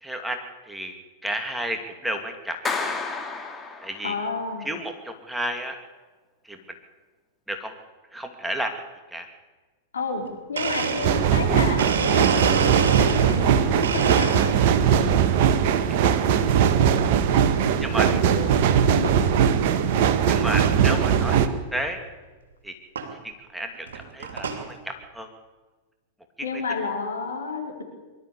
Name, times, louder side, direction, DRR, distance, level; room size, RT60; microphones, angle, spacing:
voice 1, 0.0-0.9 1.2-2.6 2.8-3.0 3.8-4.2 4.6-5.8 6.4-6.6 7.5-7.7 8.1-8.7 9.1-9.3 15.9-16.0 17.8-18.1 20.3-21.4 21.7-22.0 22.6-22.7 23.2-25.3 26.4-26.6, right 1 dB, 5° right, 4 dB, 2.6 m, -32 dB
Clapping, 2.6-4.3, left 4 dB, 15° left, 2.5 m, -31 dB
voice 2, 4.0-4.7 9.9-14.6 18.0-18.6 19.0-19.1 26.4-27.8, left 4 dB, 75° left, 2 dB, 4.6 m, -31 dB
Domestic sounds home sounds, 10.2-10.3 10.6-13.5 13.8-14.9 15.3-15.8 16.8-17.1 17.7-17.8 18.7-18.8 19.0-19.4 19.8-19.9 20.1-20.2 20.6-20.7 22.1-22.2 23.0-23.1 23.7-24.7, right 6 dB, 70° right, 2.8 m, -28 dB
sound 1, 11.0-21.5, right 8 dB, 55° right, 1.6 m, -20 dB
24.0 x 13.0 x 8.5 m, 1.3 s
figure-of-eight pair, 100°, 0 cm